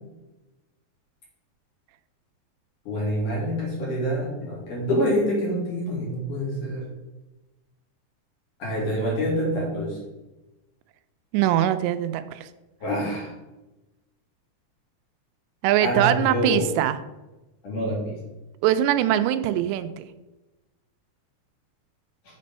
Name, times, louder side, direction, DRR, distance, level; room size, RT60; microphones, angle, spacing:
voice 1, 2.9-6.9 8.6-10.0 12.8-13.3 15.8-16.7 17.6-18.1, equal, 50° left, -4 dB, 3.8 m, -26 dB
voice 2, 11.3-12.5 15.6-17.0 18.6-20.0, right 12 dB, 85° right, 11 dB, 2.7 m, -22 dB
7.5 x 5.3 x 5.3 m, 1.0 s
omnidirectional pair, 5.0 m